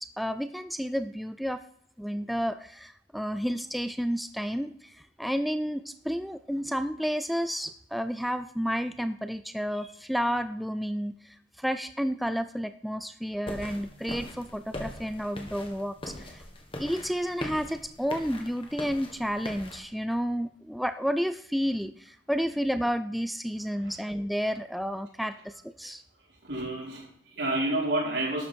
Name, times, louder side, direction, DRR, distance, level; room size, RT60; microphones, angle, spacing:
voice 1, 0.0-1.6 2.0-16.4 16.8-26.0, equal, ahead, 10 dB, 0.3 m, -31 dB
sound 1, 13.5-19.8, left 1 dB, 30° left, 1.7 m, -41 dB
voice 2, 26.4-28.5, right 1 dB, 80° right, -4 dB, 4.7 m, -30 dB
12.0 x 8.4 x 4.4 m, 0.68 s
head